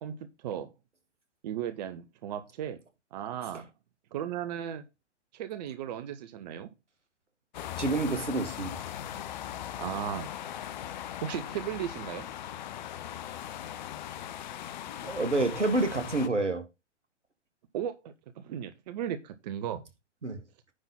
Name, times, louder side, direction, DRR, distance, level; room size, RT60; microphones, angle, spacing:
voice 1, 0.0-0.7 1.4-2.8 3.1-3.7 4.1-4.8 5.3-6.7 9.8-10.3 11.2-12.3 17.7-19.8, right 10 dB, 35° right, 0.9 m, -36 dB
sound 1, 7.5-16.3, left 11 dB, 40° left, 0.8 m, -39 dB
voice 2, 7.8-8.8 15.0-16.7 20.2-20.4, right 2 dB, 80° right, 1.9 m, -28 dB
9.8 x 4.0 x 5.6 m
figure-of-eight pair, 115°, 35 cm